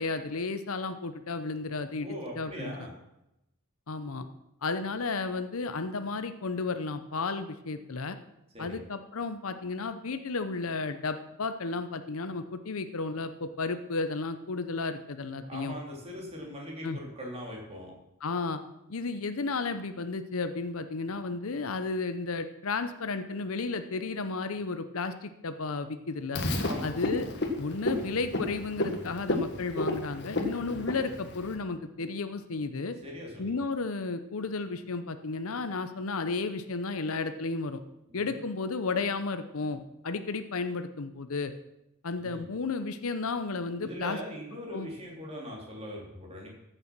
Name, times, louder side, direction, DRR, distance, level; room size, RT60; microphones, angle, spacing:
voice 1, 0.0-2.1 2.4-2.8 3.9-4.3 4.6-8.2 8.6-15.7 16.8-17.0 18.2-18.6 18.9-26.4 26.8-27.3 27.6-33.0 33.4-37.8 38.1-41.5 42.0-44.2 44.7-44.9, left 3 dB, 70° left, 10 dB, 0.7 m, -33 dB
voice 2, 2.0-2.9 8.5-8.8 15.5-17.9 26.6-27.0 33.0-33.7 38.1-38.4 42.2-42.4 43.8-46.5, equal, 30° right, -1 dB, 3.2 m, -40 dB
Frog, 26.4-31.6, left 2 dB, 50° left, 1.5 m, -32 dB
14.5 x 6.9 x 6.0 m, 0.87 s
head